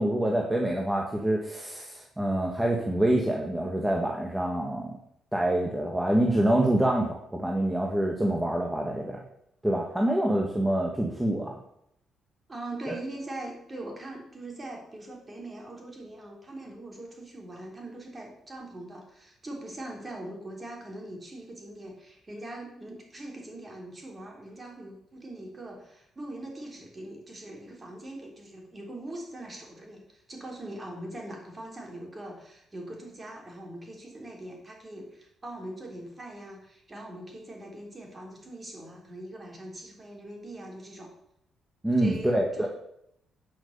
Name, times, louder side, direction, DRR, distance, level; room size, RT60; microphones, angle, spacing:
voice 1, 0.0-4.9 5.3-9.2 9.6-11.5 12.9-13.0 41.8-42.7, right 1 dB, 10° right, 0 dB, 1.6 m, -26 dB
voice 2, 12.5-41.1 42.0-42.7, right 1 dB, 25° right, 0 dB, 3.7 m, -41 dB
9.2 x 6.0 x 6.7 m, 0.74 s
cardioid pair, 90°, 0 cm